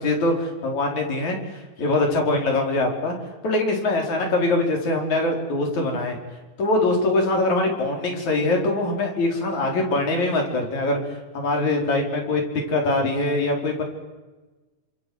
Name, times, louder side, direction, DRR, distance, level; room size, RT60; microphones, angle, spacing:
voice 1, 0.0-1.4 1.8-3.2 3.4-6.2 6.6-11.0 11.3-12.4 12.7-13.8, left 2 dB, 55° left, 1 dB, 5.7 m, -23 dB
29.0 x 25.5 x 7.9 m, 1.2 s
omnidirectional pair, 4.1 m